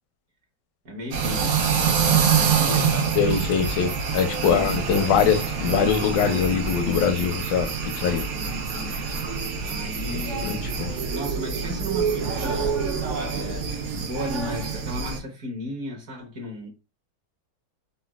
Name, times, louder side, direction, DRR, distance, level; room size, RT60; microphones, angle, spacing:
voice 1, 0.8-3.2 4.4-4.8 8.3-9.0 9.6-10.8 11.1-12.8 13.3-16.7, equal, 55° right, 1.2 m, -35 dB
sound 1, 1.1-15.2, right 6 dB, 80° right, 0.6 m, -26 dB
voice 2, 3.2-8.2 10.1-10.9, left 7 dB, 80° left, 1.3 m, -23 dB
4.0 x 2.2 x 2.2 m
omnidirectional pair, 1.9 m